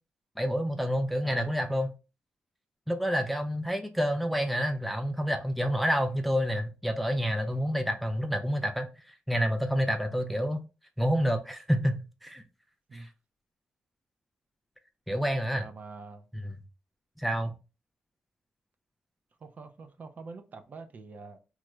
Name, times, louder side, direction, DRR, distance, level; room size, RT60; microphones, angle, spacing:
voice 1, 0.4-1.9 2.9-10.6 11.0-12.4 12.9-13.1 15.1-15.7 16.4-16.5 17.2-17.5, equal, ahead, 0.4 m, -28 dB
voice 2, 15.5-16.3 19.4-21.4, right 4 dB, 50° right, 0.5 m, -45 dB
3.1 x 2.1 x 3.5 m
cardioid pair, 110°, 4 cm